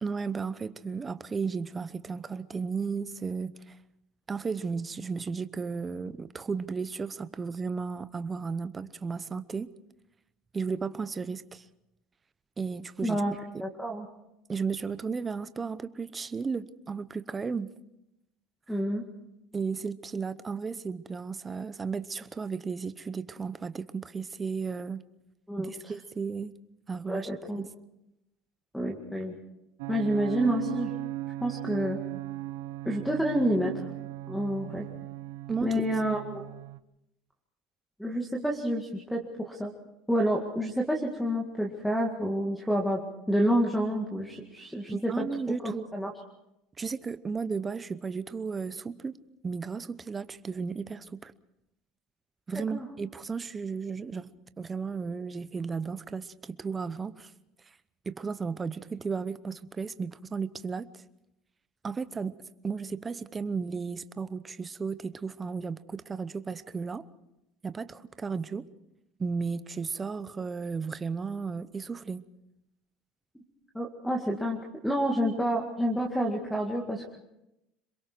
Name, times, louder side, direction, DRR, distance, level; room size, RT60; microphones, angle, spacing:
voice 1, 0.0-3.7 4.3-9.7 10.5-11.6 12.6-13.2 14.5-17.7 19.5-25.0 25.6-26.5 26.9-27.3 27.6-27.7 35.5-35.8 44.9-45.9 46.8-49.1 49.4-51.3 52.5-57.3 58.1-60.9 61.8-62.4 62.6-67.0 67.6-68.7 69.2-72.3, right 5 dB, 20° right, 0.8 m, -34 dB
voice 2, 13.0-14.1 18.7-19.0 25.5-25.7 27.1-27.6 28.7-29.4 29.9-30.9 31.4-32.0 32.8-33.7 34.3-34.9 35.6-36.4 38.0-39.7 40.1-43.0 43.3-45.1 45.6-46.1 52.7-52.9 73.7-74.6 74.8-77.2, equal, ahead, 2.1 m, -29 dB
sound 1, 29.8-36.8, right 16 dB, 90° right, 0.8 m, -37 dB
26.5 x 22.5 x 4.6 m
cardioid pair, 135°, 0 cm